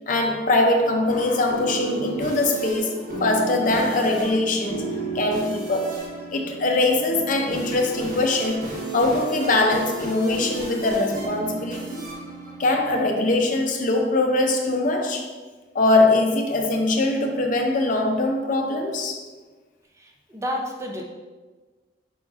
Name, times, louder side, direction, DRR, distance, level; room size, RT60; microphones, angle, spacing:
voice 1, 0.1-4.8 5.1-6.0 6.3-8.6 8.9-12.1 12.6-15.3 15.7-19.2, left 2 dB, 45° left, 3 dB, 0.5 m, -22 dB
sound 1, 0.8-13.5, right 3 dB, 50° right, 1.1 m, -34 dB
voice 2, 20.0-21.0, equal, 15° right, 0 dB, 0.5 m, -31 dB
5.0 x 3.8 x 2.4 m, 1.3 s
head